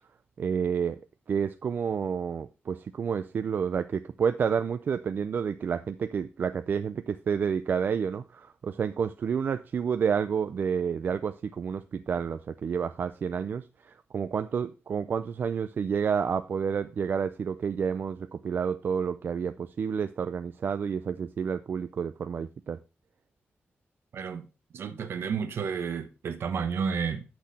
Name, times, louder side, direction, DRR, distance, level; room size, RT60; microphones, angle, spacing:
voice 1, 0.4-1.0 1.3-22.8, right 7 dB, 50° right, 0.4 m, -30 dB
voice 2, 24.1-24.4 24.7-27.2, right 6 dB, 65° right, 1.2 m, -31 dB
8.5 x 6.0 x 4.1 m
wide cardioid pair, 180°, 4 cm